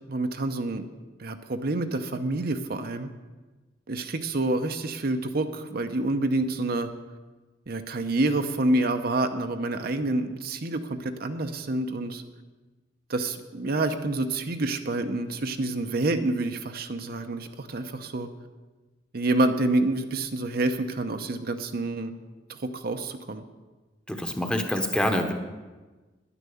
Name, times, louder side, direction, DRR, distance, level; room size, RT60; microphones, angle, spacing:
voice 1, 0.1-0.8 1.2-3.1 3.9-6.9 7.7-12.2 13.1-18.3 19.1-22.1 22.6-23.4, right 2 dB, 55° right, 7 dB, 0.8 m, -28 dB
voice 2, 24.1-25.3, left 1 dB, 5° left, 4 dB, 1.0 m, -26 dB
10.5 x 9.9 x 7.0 m, 1.3 s
head